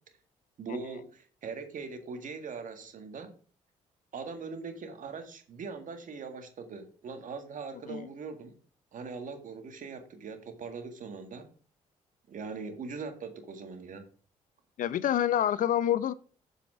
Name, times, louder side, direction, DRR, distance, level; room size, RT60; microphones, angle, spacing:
voice 1, 0.6-3.3 4.1-8.6 8.9-11.5 12.3-14.1, right 5 dB, 60° right, 1.8 m, -41 dB
voice 2, 14.8-16.1, left 10 dB, 65° left, 0.6 m, -27 dB
7.6 x 5.1 x 6.1 m
supercardioid pair, 55°, 15 cm